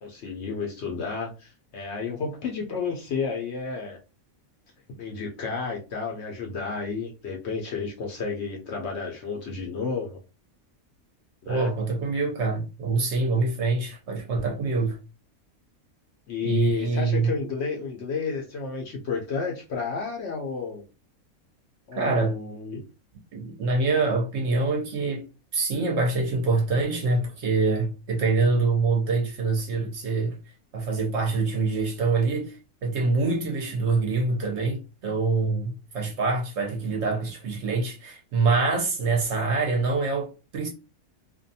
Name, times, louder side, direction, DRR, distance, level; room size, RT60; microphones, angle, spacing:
voice 1, 0.0-4.0 5.0-10.2 11.4-11.7 16.3-20.8 21.9-22.8, left 5 dB, 60° left, 0.8 m, -31 dB
voice 2, 11.5-15.0 16.4-17.3 22.0-22.4 23.3-25.3 25.5-30.4 30.7-40.7, right 3 dB, 60° right, 0.8 m, -25 dB
2.5 x 2.2 x 2.6 m
omnidirectional pair, 1.5 m